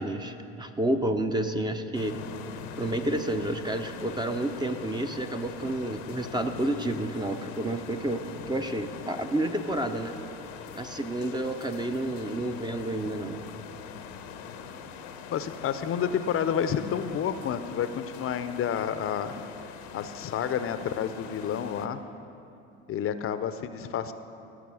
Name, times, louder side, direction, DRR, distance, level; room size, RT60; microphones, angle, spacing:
voice 1, 0.0-2.2 2.8-10.1 10.7-13.4, right 1 dB, 15° right, 7 dB, 0.6 m, -30 dB
sound 1, 1.9-21.9, left 7 dB, 85° left, 0.9 m, -43 dB
voice 2, 15.3-19.3 19.9-22.0 22.9-24.1, left 8 dB, 45° left, 11 dB, 0.6 m, -30 dB
16.0 x 6.5 x 6.3 m, 2.7 s
supercardioid pair, 85°, 32 cm